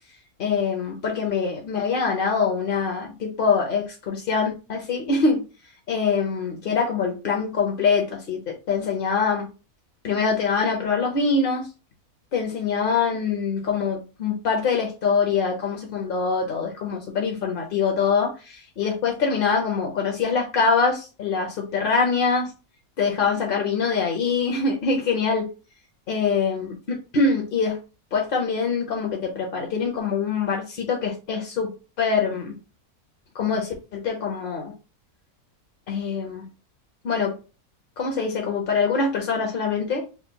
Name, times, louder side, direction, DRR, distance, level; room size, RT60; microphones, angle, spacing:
voice 1, 0.4-5.4 5.9-9.5 10.0-11.7 12.3-22.5 23.0-25.5 26.1-27.8 28.1-31.7 32.0-32.5 33.3-34.7 35.9-36.4 37.0-37.4 38.0-40.0, left 5 dB, 50° left, 1 dB, 0.7 m, -24 dB
5.6 x 2.7 x 2.2 m, 0.32 s
omnidirectional pair, 1.6 m